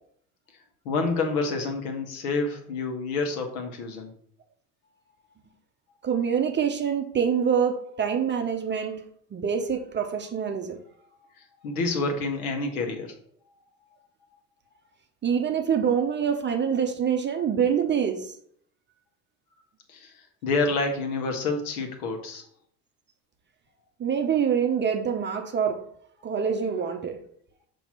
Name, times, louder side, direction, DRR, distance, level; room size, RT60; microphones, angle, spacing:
voice 1, 0.8-4.1 11.4-13.1 19.9-22.4, left 3 dB, 65° left, 4 dB, 1.3 m, -28 dB
voice 2, 6.0-9.1 9.3-10.8 15.2-18.3 24.0-25.8 26.2-27.2, right 7 dB, 25° right, 6 dB, 0.7 m, -25 dB
5.8 x 3.0 x 5.5 m, 0.64 s
figure-of-eight pair, 70°, 47 cm